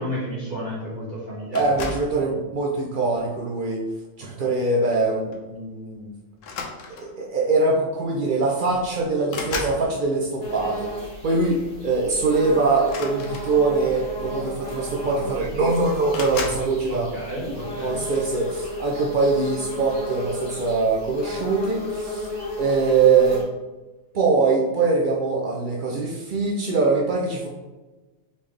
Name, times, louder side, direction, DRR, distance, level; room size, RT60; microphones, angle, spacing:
voice 1, 0.0-1.6 4.4-4.5 16.4-16.5 16.9-18.0, equal, 40° right, -8 dB, 1.3 m, -32 dB
sound 1, 1.5-2.2 3.0-3.4 4.9-5.0 5.3-5.5 6.4-7.2 8.3-8.4 8.7-9.8 12.8-13.9 14.8-14.9 15.1-15.6 16.1-16.7, left 4 dB, 75° left, 1.0 m, -33 dB
voice 2, 1.5-3.8 4.2-6.1 7.0-10.9 11.2-17.1 17.5-22.3 22.6-23.4 24.1-27.5, right 3 dB, 55° right, -1 dB, 0.5 m, -23 dB
sound 2, 10.4-23.4, left 1 dB, 20° right, 1.2 m, -33 dB
4.0 x 3.5 x 3.2 m, 1.2 s
omnidirectional pair, 1.4 m